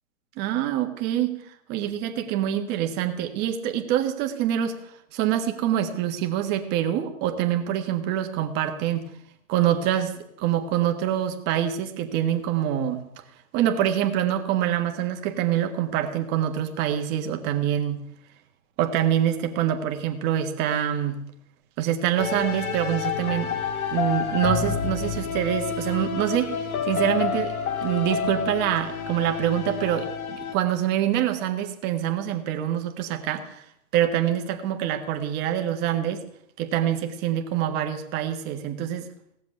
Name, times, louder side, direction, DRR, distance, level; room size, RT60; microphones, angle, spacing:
voice 1, 0.4-1.4 1.7-4.8 5.1-9.1 9.5-13.0 13.5-18.1 18.8-21.2 21.8-23.6 23.9-27.5 27.8-33.6 33.9-36.2 36.6-39.1, right 11 dB, 25° right, 5 dB, 1.5 m, -25 dB
sound 1, 22.2-30.5, left 6 dB, 80° left, 2.4 m, -29 dB
17.5 x 7.5 x 9.8 m, 0.77 s
hypercardioid pair, 150°, 42 cm